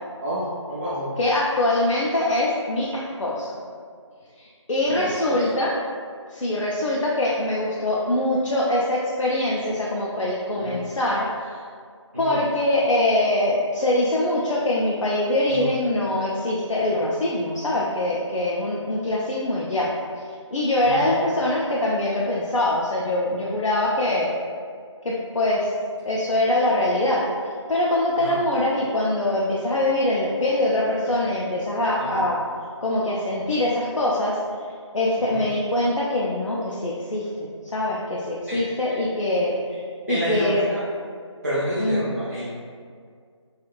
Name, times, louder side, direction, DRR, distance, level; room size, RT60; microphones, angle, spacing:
voice 1, 0.2-1.2 4.9-5.4 10.5-10.8 12.1-12.3 15.5-15.7 20.8-21.1 28.2-28.4 32.0-32.2 35.2-35.4 38.5-39.0 40.1-40.8 41.4-42.4, equal, 30° right, -10 dB, 0.4 m, -29 dB
voice 2, 1.2-3.5 4.4-5.8 6.3-11.6 12.2-19.9 20.5-24.3 25.0-25.7 26.1-27.2 27.7-32.4 32.8-34.4 34.9-37.3 37.6-39.5 40.1-40.6 41.8-42.2, left 1 dB, 85° left, -5 dB, 0.5 m, -23 dB
2.4 x 2.3 x 3.0 m, 2.1 s
figure-of-eight pair, 170°, 16 cm